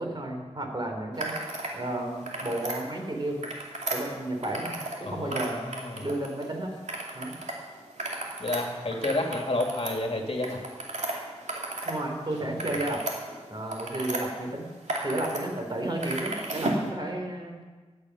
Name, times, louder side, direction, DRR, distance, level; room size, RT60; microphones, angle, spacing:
voice 1, 0.0-1.3 1.7-3.5 3.9-5.7 6.0-6.7 7.1-7.3 11.8-13.0 13.5-14.7 15.0-17.6, right 1 dB, 40° right, 2 dB, 3.0 m, -32 dB
sound 1, 1.1-1.7 2.1-2.8 3.3-5.0 5.3-6.5 6.9-7.5 7.9-12.0 12.3-14.2 14.7-15.4 15.7-16.9, right 2 dB, 85° right, 2.5 m, -34 dB
voice 2, 5.0-6.1 8.4-10.6 12.5-12.6, left 2 dB, 55° left, 2 dB, 2.1 m, -30 dB
16.0 x 11.0 x 5.8 m, 1.4 s
wide cardioid pair, 70°, 12 cm